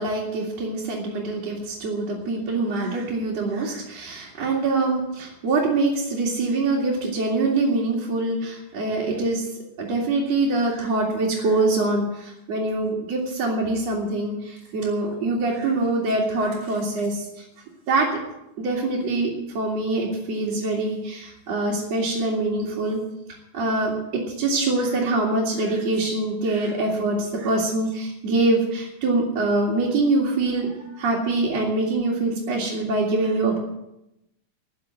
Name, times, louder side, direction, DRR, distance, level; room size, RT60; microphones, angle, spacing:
voice 1, 0.0-9.5 9.8-17.4 17.9-18.2 18.6-23.0 23.5-33.6, right 2 dB, 55° right, -4 dB, 3.4 m, -24 dB
14.5 x 8.7 x 9.3 m, 0.88 s
omnidirectional pair, 3.5 m